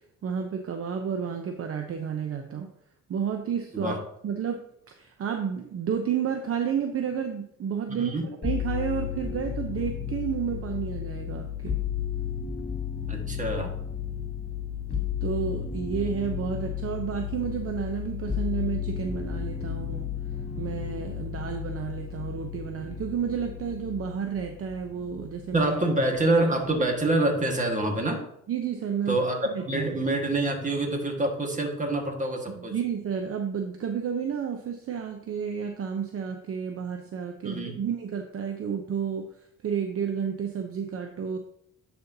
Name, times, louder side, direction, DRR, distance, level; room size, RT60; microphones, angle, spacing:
voice 1, 0.2-2.7 3.1-3.9 4.2-8.1 8.4-11.7 15.2-20.1 20.6-25.7 28.5-29.2 29.5-29.9 32.6-39.2 39.6-41.4, right 7 dB, 50° right, 4 dB, 0.7 m, -31 dB
voice 2, 7.9-8.3 13.1-13.8 25.5-28.2 29.1-32.8 37.4-37.8, right 2 dB, 25° right, 2 dB, 1.6 m, -26 dB
sound 1, 8.4-25.8 26.2-27.0, left 8 dB, 35° left, 2.3 m, -33 dB
10.5 x 4.3 x 2.7 m, 0.72 s
cardioid pair, 90°, 30 cm